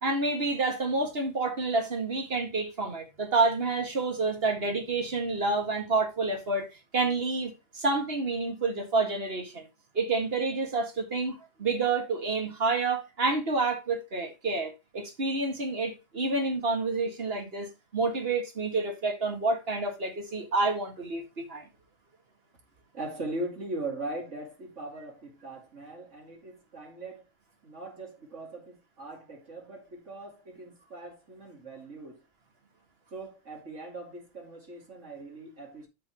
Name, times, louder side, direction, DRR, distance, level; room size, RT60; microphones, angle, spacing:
voice 1, 0.0-9.7 9.9-21.7, right 3 dB, 50° right, 2.2 m, -29 dB
voice 2, 22.9-27.2 27.6-32.2 33.1-35.9, right 2 dB, 70° right, 2.7 m, -40 dB
12.5 x 5.5 x 3.0 m
omnidirectional pair, 1.3 m